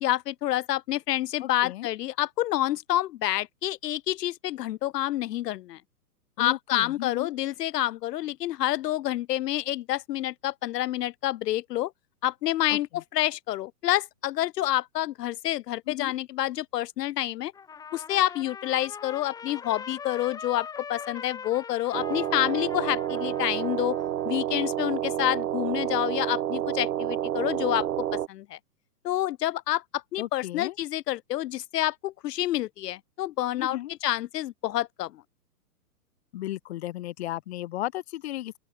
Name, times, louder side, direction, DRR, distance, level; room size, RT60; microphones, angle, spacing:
voice 1, 0.0-5.8 6.4-11.9 12.2-17.5 17.9-24.0 24.3-27.9 28.3-28.6 29.0-35.1, left 14 dB, 80° left, 0.6 m, -28 dB
voice 2, 1.4-1.9 6.4-7.3 12.7-12.8 15.9-16.1 30.2-30.7 33.6-33.9 36.3-38.6, left 15 dB, 40° left, 0.9 m, -34 dB
Trumpet, 17.5-24.3, left 6 dB, 10° left, 1.2 m, -41 dB
sound 1, 21.9-28.3, right 11 dB, 70° right, 1.4 m, -29 dB
open air
hypercardioid pair, 150°, 48 cm